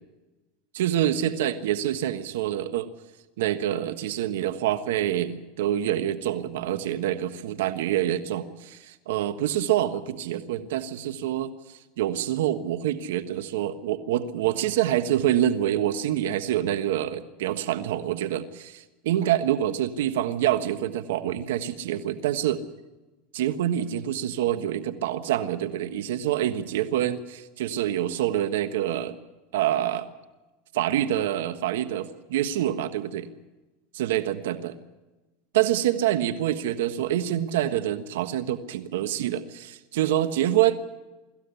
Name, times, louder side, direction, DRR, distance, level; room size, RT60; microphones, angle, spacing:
voice 1, 0.7-2.9 3.4-11.5 12.0-22.6 23.3-29.2 29.5-30.1 30.7-33.3 33.9-34.6 35.5-40.8, right 12 dB, 85° right, 10 dB, 1.4 m, -26 dB
25.0 x 15.0 x 7.0 m, 1.1 s
supercardioid pair, 130°, 0 cm